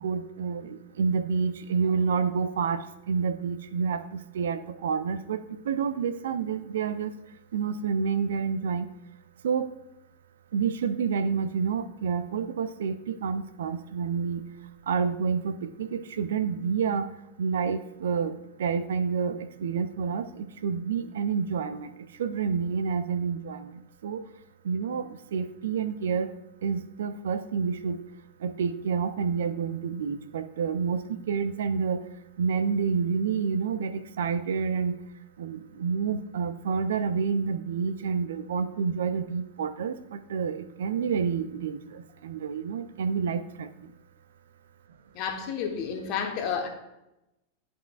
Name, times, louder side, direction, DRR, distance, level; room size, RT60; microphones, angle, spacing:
voice 1, 0.0-5.4 5.6-7.1 7.5-8.9 9.4-9.7 10.5-14.4 14.9-17.1 17.4-21.9 22.2-23.7 24.0-24.2 24.6-26.3 26.6-28.0 28.4-32.0 32.4-35.0 35.4-43.7, right 6 dB, 60° right, 12 dB, 0.4 m, -29 dB
voice 2, 45.1-46.7, left 7 dB, 40° left, 4 dB, 1.2 m, -30 dB
11.0 x 5.5 x 2.4 m, 0.90 s
figure-of-eight pair, 90°, 0 cm